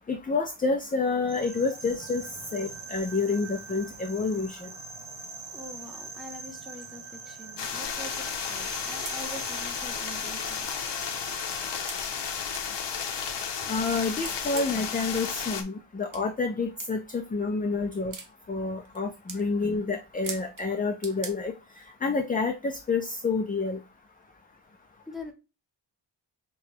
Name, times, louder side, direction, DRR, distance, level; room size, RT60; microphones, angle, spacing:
voice 1, 0.1-2.2 2.5-4.6 13.7-18.1 18.5-21.5 22.0-23.8, left 4 dB, 20° left, 5 dB, 0.3 m, -28 dB
sound 1, 1.2-11.8, right 4 dB, 85° right, 1.2 m, -43 dB
voice 2, 5.5-10.7 25.1-25.3, left 1 dB, ahead, 2 dB, 0.8 m, -44 dB
sound 2, 7.6-15.6, left 7 dB, 65° left, 0.8 m, -33 dB
sound 3, 9.1-9.2 10.0-10.1 10.6-10.7 11.9-12.0 12.5-12.7 14.2-14.9 16.1-16.2 16.8-16.9 18.1-18.3 18.8-19.0 19.3-19.4 20.2-20.7 21.0-21.3, right 5 dB, 45° right, 0.7 m, -39 dB
5.7 x 2.3 x 2.6 m, 0.28 s
wide cardioid pair, 175°, 44 cm